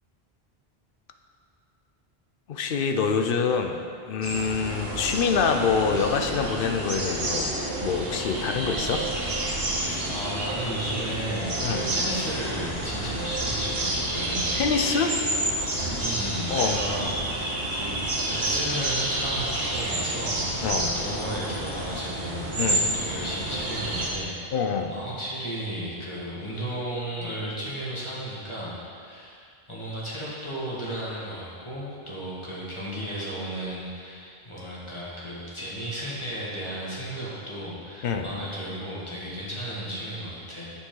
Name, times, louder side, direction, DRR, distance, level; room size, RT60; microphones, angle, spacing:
voice 1, 2.5-3.8 4.1-9.1 11.6-11.8 14.5-15.2 16.5-16.8 20.6-20.9 22.6-22.9 24.5-24.9 38.0-38.3, left 5 dB, 65° left, 5 dB, 0.8 m, -26 dB
sound 1, 4.2-24.1, right 1 dB, 70° right, 1.4 m, -30 dB
sound 2, 4.7-21.8, left 1 dB, 50° left, 1.6 m, -39 dB
voice 2, 9.8-14.5 16.0-24.6 24.9-29.4 29.7-40.7, equal, 30° left, -8 dB, 1.6 m, -34 dB
8.5 x 7.1 x 3.8 m, 2.4 s
omnidirectional pair, 1.0 m